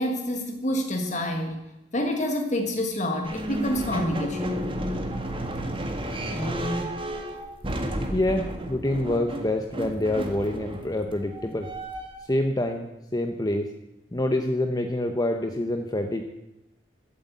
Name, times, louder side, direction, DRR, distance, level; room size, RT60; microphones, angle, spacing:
voice 1, 0.0-1.6 1.9-4.7, left 1 dB, 40° left, 4 dB, 1.5 m, -28 dB
sound 1, 3.2-12.3, right 1 dB, 30° right, 1.6 m, -32 dB
voice 2, 6.3-6.9 8.1-11.7 12.3-13.7 14.1-16.2, left 1 dB, 20° left, 5 dB, 0.9 m, -27 dB
13.0 x 8.1 x 8.2 m, 0.91 s
head